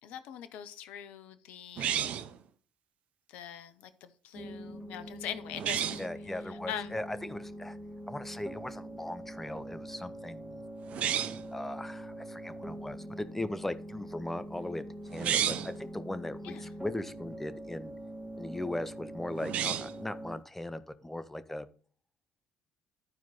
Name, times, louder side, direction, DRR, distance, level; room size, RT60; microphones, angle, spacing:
voice 1, 0.0-2.0 3.3-6.1 6.5-7.0 16.4-16.7, left 10 dB, 70° left, 11 dB, 0.8 m, -42 dB
sound 1, 1.8-2.4 5.5-6.1 10.9-11.5 15.1-15.8 19.4-20.0, right 9 dB, 60° right, 0.7 m, -31 dB
sound 2, 4.3-20.4, right 1 dB, 5° right, 2.7 m, -44 dB
voice 2, 6.0-7.8 8.1-10.6 11.5-14.8 15.1-17.9 18.4-21.7, left 1 dB, 10° left, 13 dB, 1.0 m, -38 dB
12.0 x 4.6 x 4.1 m, 0.43 s
hypercardioid pair, 55°, 2 cm